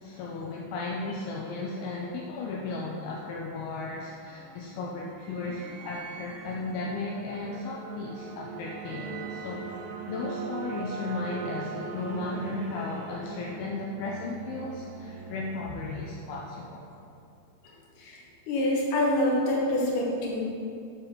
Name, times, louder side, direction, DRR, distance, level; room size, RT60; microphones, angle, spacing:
voice 1, 0.0-9.6 10.1-16.9, left 3 dB, 80° left, -2 dB, 2.3 m, -35 dB
sound 1, 3.5-17.1, right 6 dB, 80° right, 2.7 m, -41 dB
voice 2, 18.5-20.4, left 1 dB, 65° left, -4 dB, 2.4 m, -26 dB
7.4 x 4.1 x 6.6 m, 2.5 s
omnidirectional pair, 4.9 m